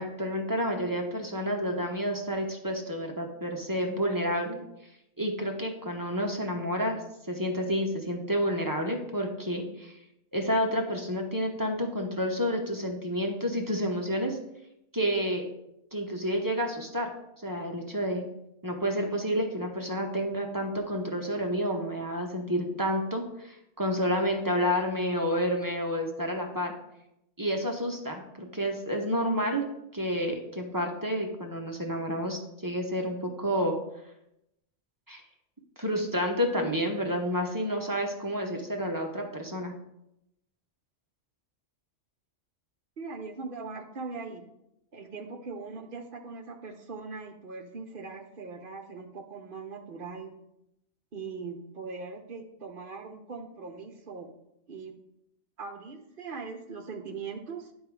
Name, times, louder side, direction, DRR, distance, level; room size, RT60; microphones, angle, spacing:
voice 1, 0.0-4.6 5.2-7.0 7.3-10.0 10.3-14.4 14.9-15.4 15.9-17.1 17.4-18.2 18.6-26.7 27.4-29.6 29.9-33.8 35.1-35.2 35.8-39.7, equal, 20° right, 2 dB, 0.8 m, -30 dB
voice 2, 43.0-44.4 44.9-50.4 51.1-54.3 54.7-54.9 55.6-57.7, right 4 dB, 50° right, 6 dB, 0.9 m, -40 dB
10.5 x 3.6 x 4.7 m, 0.84 s
omnidirectional pair, 1.2 m